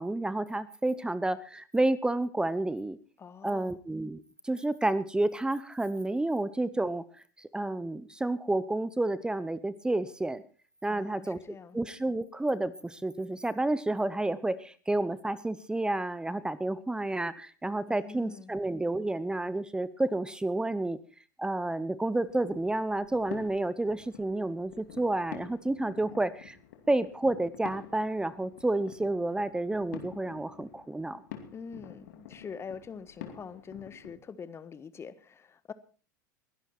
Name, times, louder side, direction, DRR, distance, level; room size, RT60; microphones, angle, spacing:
voice 1, 0.0-3.0 3.4-7.0 7.4-10.4 10.8-11.4 11.7-21.0 21.4-26.6 26.9-31.2, right 2 dB, 10° right, 17 dB, 0.9 m, -30 dB
voice 2, 3.2-3.8 10.9-11.8 17.9-18.5 31.5-35.7, left 6 dB, 25° left, 14 dB, 1.4 m, -44 dB
sound 1, 22.2-34.1, left 9 dB, 65° left, 2.6 m, -48 dB
21.5 x 11.5 x 4.4 m, 0.38 s
hypercardioid pair, 80°, 10 cm